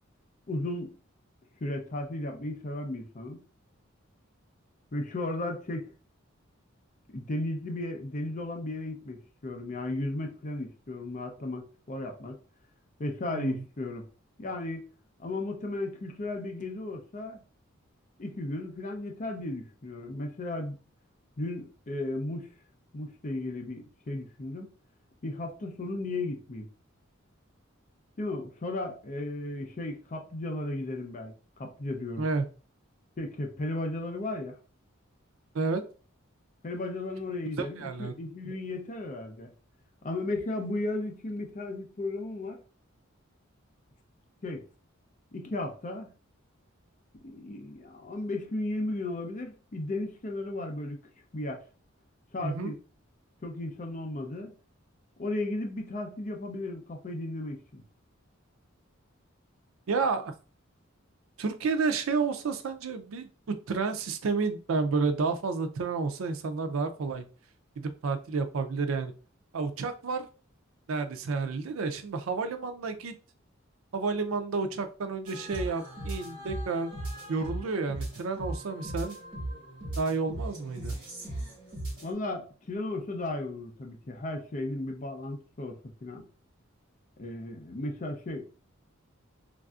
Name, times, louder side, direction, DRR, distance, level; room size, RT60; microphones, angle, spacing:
voice 1, 0.5-0.9 1.6-3.4 4.9-5.9 7.1-12.4 13.0-14.1 14.4-14.9 15.2-17.4 18.2-20.8 21.4-22.5 22.9-24.7 25.2-26.7 28.2-32.3 33.2-34.6 36.6-39.5 40.0-42.6 44.4-44.6 45.3-46.1 47.2-51.0 51.3-51.6 52.3-52.8 53.4-54.5 55.2-57.8 82.0-86.2 87.2-88.5, left 2 dB, 40° left, 0.5 m, -35 dB
voice 2, 13.3-13.6 32.2-32.5 35.5-35.8 37.6-38.2 52.4-52.7 59.9-60.3 61.4-67.3 67.8-69.1 69.5-70.3 70.9-73.1 73.9-76.9 77.3-79.2 80.0-81.0, right 4 dB, 75° right, 0.4 m, -30 dB
sound 1, 75.2-82.1, right 1 dB, 25° right, 1.5 m, -38 dB
3.3 x 2.5 x 2.3 m
head